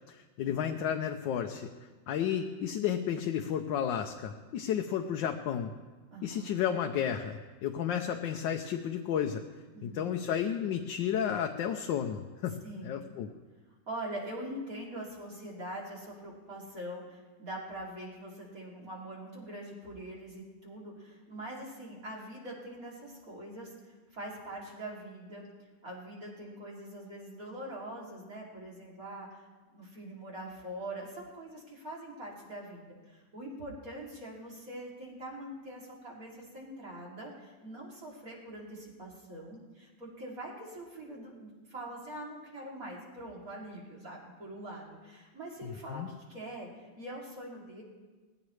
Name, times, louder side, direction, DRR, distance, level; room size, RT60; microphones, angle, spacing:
voice 1, 0.1-1.7 2.1-5.7 6.2-9.4 9.8-12.5 12.8-13.3 45.6-46.1, left 9 dB, 80° left, 4 dB, 1.4 m, -32 dB
voice 2, 6.1-6.5 7.8-8.0 9.7-10.1 12.6-12.9 13.9-25.5 25.8-29.3 29.7-47.8, right 1 dB, 45° right, -4 dB, 3.3 m, -43 dB
19.0 x 15.5 x 3.2 m, 1.3 s
omnidirectional pair, 2.0 m